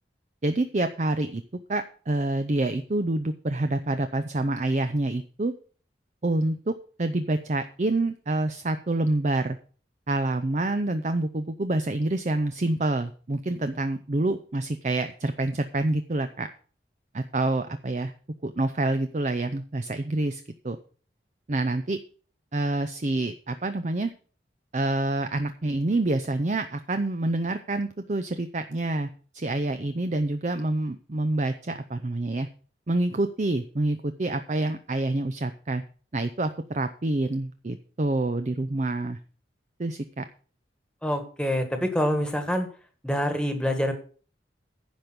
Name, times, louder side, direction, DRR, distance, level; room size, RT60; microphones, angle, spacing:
voice 1, 0.4-1.4 1.7-5.5 6.2-6.7 7.0-9.6 10.1-16.5 17.1-18.1 18.4-20.8 21.5-22.0 22.5-24.1 24.7-32.5 32.9-35.8 36.1-39.2 39.8-40.2, right 2 dB, 40° right, 9 dB, 0.6 m, -27 dB
voice 2, 41.0-42.7 43.0-43.9, equal, 5° left, 7 dB, 1.5 m, -26 dB
10.5 x 5.2 x 7.9 m, 0.42 s
head